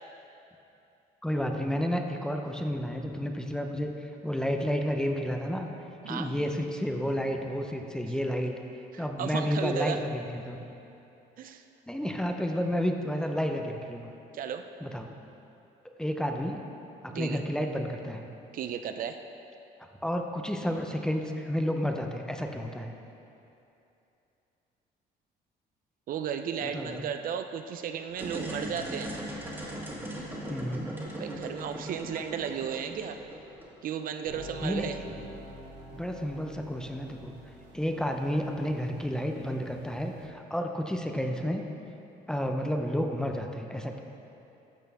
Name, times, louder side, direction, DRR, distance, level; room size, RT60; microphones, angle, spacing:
voice 1, 1.2-5.7 6.1-8.6 9.0-10.8 11.9-14.1 14.8-15.1 16.0-16.6 17.0-18.3 20.0-22.9 26.6-27.1 30.5-30.9 34.6-35.1 35.9-37.3 37.7-41.6 42.3-44.0, equal, 5° left, 3 dB, 0.6 m, -31 dB
voice 2, 6.0-6.4 8.9-10.0 11.4-11.6 14.3-14.6 17.1-17.4 18.5-19.2 26.1-29.1 31.2-33.2 33.8-35.0, right 8 dB, 55° right, 7 dB, 0.5 m, -34 dB
sound 1, 28.1-33.9, right 1 dB, 10° right, 1.7 m, -39 dB
sound 2, 34.3-40.3, equal, 80° right, 1.4 m, -48 dB
12.0 x 6.6 x 3.5 m, 2.8 s
cardioid pair, 110°, 17 cm